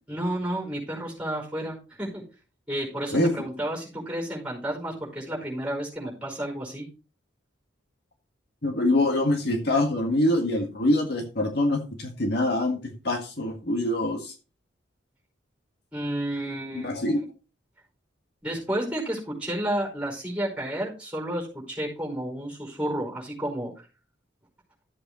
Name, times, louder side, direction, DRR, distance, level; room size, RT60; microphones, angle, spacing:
voice 1, 0.1-2.2 2.7-6.9 15.9-16.9 17.2-17.3 18.4-23.7, right 1 dB, 5° right, 0 dB, 5.0 m, -31 dB
voice 2, 3.1-3.5 8.6-14.3 16.7-17.2, left 1 dB, 55° left, 3 dB, 1.8 m, -25 dB
13.5 x 8.0 x 3.1 m, 0.33 s
head